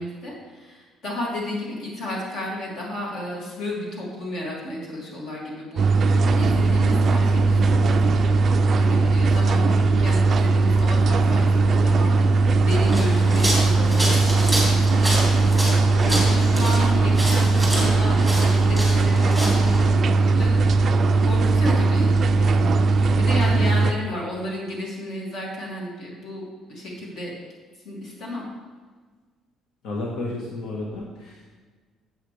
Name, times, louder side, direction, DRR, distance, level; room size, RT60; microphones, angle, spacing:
voice 1, 0.0-22.7 23.1-27.3 27.8-28.5, left 1 dB, 50° left, -3 dB, 2.8 m, -33 dB
sound 1, 5.8-23.9, right 3 dB, 35° right, 0.4 m, -19 dB
sound 2, 12.8-19.9, equal, 5° left, 2.4 m, -28 dB
voice 2, 29.8-31.4, left 2 dB, 65° left, -3 dB, 1.6 m, -31 dB
11.5 x 7.8 x 3.5 m, 1.4 s
cardioid pair, 165°, 0 cm